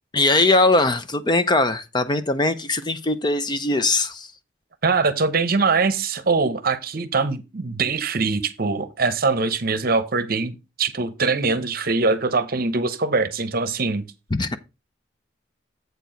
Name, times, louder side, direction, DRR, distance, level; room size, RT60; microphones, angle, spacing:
voice 1, 0.1-4.3 14.3-14.6, left 2 dB, 20° left, 0.5 m, -20 dB
voice 2, 4.8-14.1, right 4 dB, 50° right, 0.8 m, -22 dB
8.0 x 4.5 x 5.1 m
head